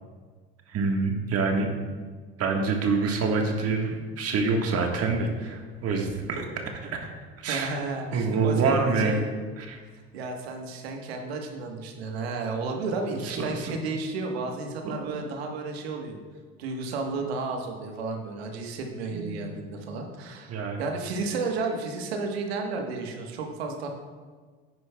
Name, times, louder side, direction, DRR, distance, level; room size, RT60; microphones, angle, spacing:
voice 1, 0.7-1.7 2.4-6.5 6.8-7.1 7.4-7.7 8.1-9.2 9.6-9.8 13.3-13.8 14.8-15.2 19.1-19.6 20.0-20.2 20.5-20.8, right 4 dB, 50° right, 2 dB, 1.5 m, -26 dB
voice 2, 7.5-9.3 10.1-16.2 16.6-23.9, right 3 dB, 85° right, 3 dB, 1.3 m, -32 dB
10.0 x 9.7 x 2.3 m, 1.5 s
hypercardioid pair, 75°, 30 cm